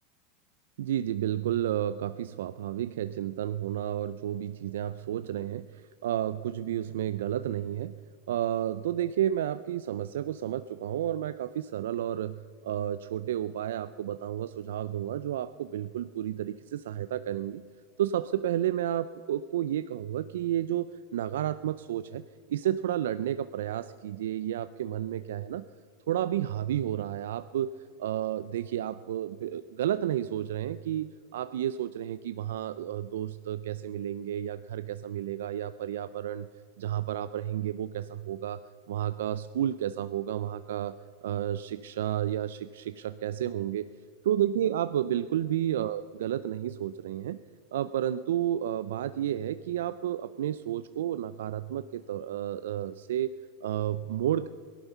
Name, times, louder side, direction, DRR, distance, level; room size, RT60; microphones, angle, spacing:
voice 1, 0.8-7.9 8.3-17.6 18.0-22.2 22.5-25.6 26.1-27.7 28.0-36.5 36.8-38.6 38.9-40.9 41.2-43.9 44.2-47.4 47.7-54.5, right 11 dB, 80° right, 13 dB, 0.4 m, -31 dB
17.5 x 11.5 x 5.6 m, 2.1 s
hypercardioid pair, 110°, 0 cm